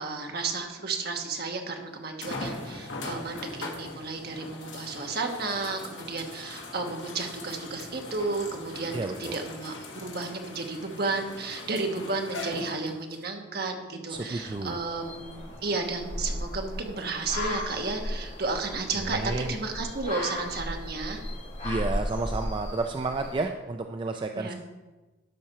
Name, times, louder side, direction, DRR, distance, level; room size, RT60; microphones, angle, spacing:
voice 1, 0.0-19.2 19.5-21.2 24.3-24.5, right 3 dB, 55° right, 3 dB, 1.2 m, -33 dB
sound 1, 1.1-1.2 2.2-13.2 14.0-14.1 17.5-17.6, left 2 dB, 75° left, 1.5 m, -40 dB
voice 2, 8.9-9.4 14.1-14.8 19.0-19.5 21.6-24.5, right 3 dB, 25° right, 5 dB, 0.3 m, -31 dB
sound 2, 14.1-23.4, left 1 dB, 40° left, 3.0 m, -36 dB
12.5 x 4.4 x 5.6 m, 1.2 s
head